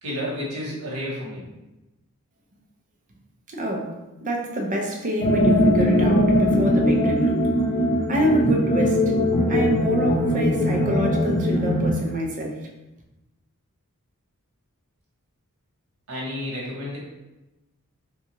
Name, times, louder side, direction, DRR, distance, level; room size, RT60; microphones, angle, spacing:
voice 1, 0.0-1.5 16.1-17.0, left 1 dB, 75° right, -4 dB, 1.0 m, -31 dB
voice 2, 3.5-3.9 4.2-7.5 8.1-9.0 9.5-12.6, right 1 dB, 35° right, 1 dB, 0.5 m, -26 dB
sound 1, 5.2-12.0, left 1 dB, 25° left, 0.4 m, -20 dB
3.6 x 2.3 x 2.9 m, 1.0 s
head